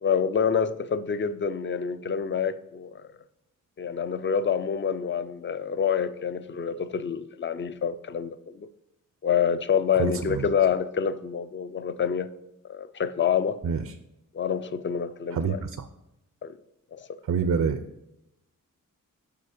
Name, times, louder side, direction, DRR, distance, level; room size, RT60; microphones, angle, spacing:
voice 1, 0.0-3.1 3.8-8.7 9.2-12.3 12.7-13.6 14.3-15.6 16.4-16.6 16.9-17.1, left 7 dB, 35° left, 0.4 m, -27 dB
voice 2, 10.0-10.5 13.6-13.8 15.3-15.9 17.3-17.8, right 6 dB, 60° right, 0.5 m, -26 dB
6.8 x 5.5 x 4.9 m
wide cardioid pair, 140°, 33 cm